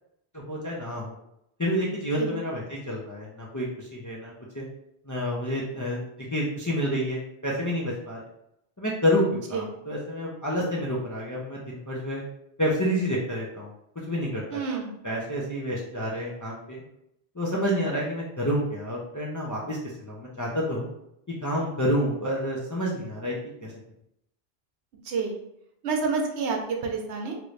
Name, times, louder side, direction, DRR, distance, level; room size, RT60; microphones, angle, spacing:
voice 1, 0.5-1.1 1.6-4.6 5.1-6.0 6.3-8.2 8.8-12.2 12.6-13.7 14.1-14.8 15.0-16.8 17.4-20.9 21.4-23.3 23.6-23.7, equal, 25° left, -5 dB, 0.4 m, -29 dB
voice 2, 14.5-15.0 25.0-25.4 25.8-27.4, right 4 dB, 80° right, 2 dB, 0.9 m, -29 dB
3.0 x 2.6 x 3.1 m, 0.79 s
omnidirectional pair, 1.1 m